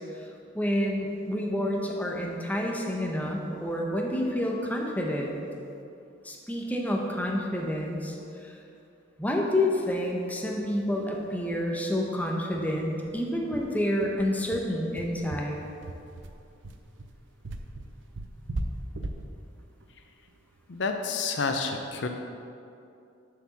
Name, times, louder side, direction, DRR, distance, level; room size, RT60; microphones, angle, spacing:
voice 1, 0.5-5.4 6.2-8.2 8.4-8.5 9.2-15.6, left 1 dB, 10° left, -1 dB, 0.9 m, -29 dB
sound 1, 10.6-10.7 11.0-11.1 11.5-11.6 12.0-12.1 12.5-21.0, right 1 dB, 80° right, 0.6 m, -39 dB
voice 2, 20.7-22.1, left 4 dB, 65° left, 5 dB, 0.5 m, -29 dB
6.9 x 4.9 x 7.0 m, 2.6 s
head